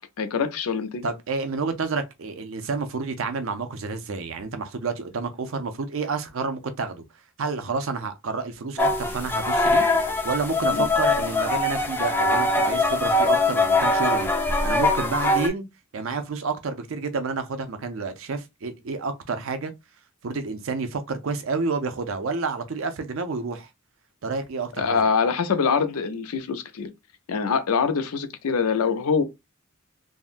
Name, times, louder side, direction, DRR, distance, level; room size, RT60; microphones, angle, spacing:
voice 1, 0.2-1.0 10.7-10.9 24.8-26.9 27.3-29.2, left 5 dB, 85° left, 0.5 m, -24 dB
voice 2, 1.0-7.0 7.4-14.3 14.6-15.7 15.9-19.7 20.2-23.7 24.2-25.1, right 4 dB, 65° right, 0.5 m, -29 dB
sound 1, 8.8-15.5, left 2 dB, 10° left, 0.3 m, -22 dB
3.5 x 2.1 x 2.4 m
head